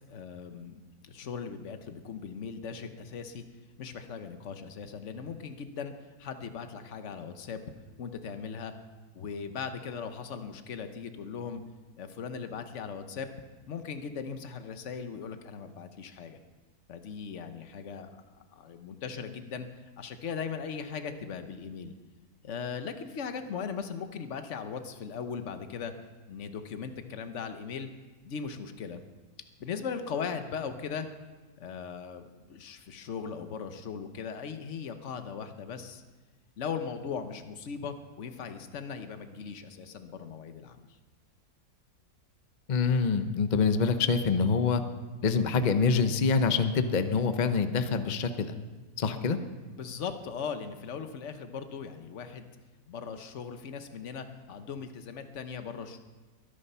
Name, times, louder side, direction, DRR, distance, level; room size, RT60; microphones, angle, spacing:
voice 1, 0.1-3.4 3.8-5.9 6.2-7.6 8.0-8.7 9.1-11.6 12.0-13.3 13.7-16.4 16.9-19.7 20.0-21.9 22.4-25.9 26.3-27.9 28.2-29.0 29.6-31.1 31.6-36.0 36.6-40.8 49.7-52.5 52.9-56.0, left 6 dB, 55° left, 8 dB, 1.3 m, -38 dB
voice 2, 42.7-44.8 45.2-48.5 49.0-49.4, left 5 dB, 35° left, 9 dB, 0.8 m, -25 dB
22.5 x 10.0 x 5.6 m, 1.3 s
omnidirectional pair, 1.6 m